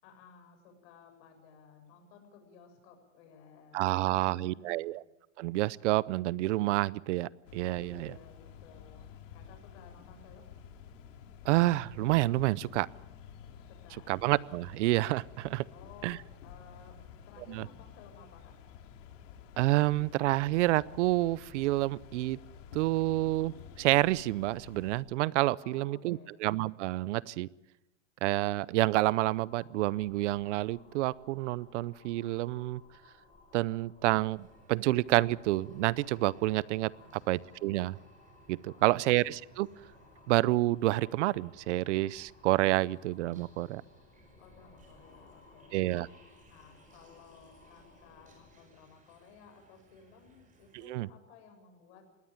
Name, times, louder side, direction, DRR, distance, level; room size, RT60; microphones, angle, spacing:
voice 1, 0.0-4.9 7.7-10.5 13.7-14.1 15.7-17.0 17.3-18.6 25.6-26.3 36.9-37.3 38.7-39.3 44.4-45.8 46.5-52.0, left 5 dB, 60° left, 6 dB, 7.4 m, -56 dB
voice 2, 3.7-5.0 5.4-8.1 11.4-12.9 14.1-15.6 16.0-16.2 17.5-17.7 19.6-22.4 22.7-27.5 28.2-32.8 33.5-38.0 38.5-39.7 40.3-43.8 45.7-46.1 50.7-51.1, right 18 dB, 65° right, 22 dB, 0.7 m, -29 dB
sound 1, 7.4-25.0, left 8 dB, 75° left, 2.6 m, -51 dB
sound 2, 28.9-48.7, left 3 dB, 15° left, 7.5 m, -60 dB
sound 3, 34.3-50.9, right 3 dB, 20° right, 5.1 m, -62 dB
20.5 x 17.0 x 8.8 m, 0.91 s
supercardioid pair, 140°, 38 cm